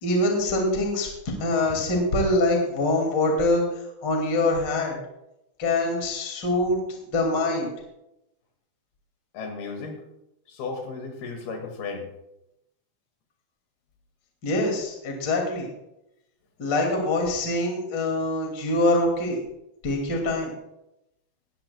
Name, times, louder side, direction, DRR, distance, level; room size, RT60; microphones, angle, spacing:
voice 1, 0.0-3.6 4.0-5.0 5.6-7.7 14.4-15.7 16.6-19.4 19.8-20.5, left 2 dB, 30° left, 1 dB, 2.6 m, -24 dB
voice 2, 9.3-10.0 10.5-12.1, left 4 dB, 70° left, 3 dB, 4.0 m, -34 dB
18.0 x 14.5 x 2.3 m, 0.88 s
omnidirectional pair, 4.6 m